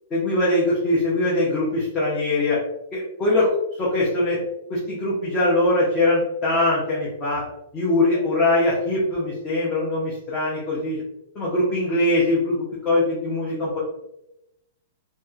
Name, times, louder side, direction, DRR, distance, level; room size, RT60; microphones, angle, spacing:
voice 1, 0.1-2.6 2.9-4.4 4.7-7.4 7.7-11.0 11.3-13.8, left 2 dB, 15° left, -7 dB, 0.5 m, -22 dB
2.9 x 2.1 x 2.3 m, 0.85 s
hypercardioid pair, 175°, 0 cm